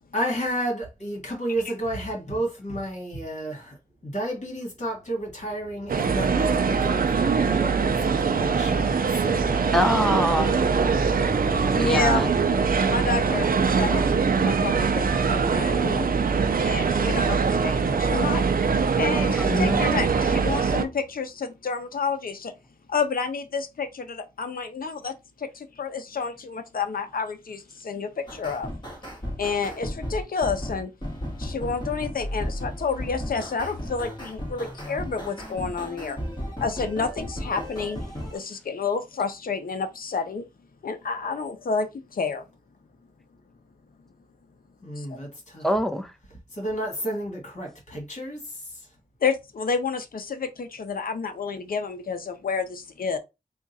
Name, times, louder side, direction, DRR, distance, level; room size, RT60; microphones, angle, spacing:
voice 1, 0.1-9.4 44.8-45.7 46.5-48.9, right 1 dB, 50° left, 2.0 m, -31 dB
sound 1, 4.8-21.1, right 1 dB, 35° right, 1.0 m, -36 dB
sound 2, 5.9-20.8, right 5 dB, 70° right, 0.5 m, -23 dB
voice 2, 9.7-10.6 11.7-12.3 19.4-19.8 45.6-46.1, equal, ahead, 0.6 m, -24 dB
voice 3, 11.7-12.2 12.8-16.1 16.6-18.4 19.0-22.5 22.9-28.7 29.4-30.9 31.4-36.2 36.6-38.0 38.3-40.4 40.8-42.4 45.0-45.2 49.2-53.2, left 5 dB, 70° left, 0.7 m, -29 dB
sound 3, 28.3-38.4, equal, 30° left, 2.0 m, -34 dB
3.5 x 2.4 x 4.1 m
wide cardioid pair, 105°, 16 cm